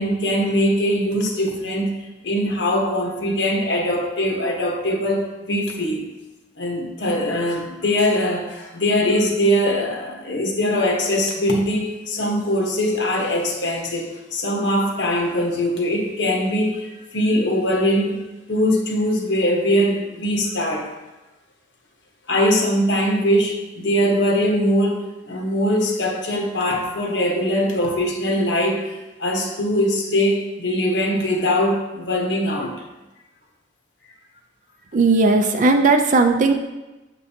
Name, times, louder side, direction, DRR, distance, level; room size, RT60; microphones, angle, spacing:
voice 1, 0.0-1.9 2.2-6.1 6.6-18.2 18.5-20.9 22.3-32.7, equal, 80° left, 1 dB, 1.2 m, -21 dB
voice 2, 34.9-36.5, right 3 dB, 45° right, 5 dB, 0.4 m, -16 dB
7.8 x 5.2 x 2.8 m, 1.0 s
head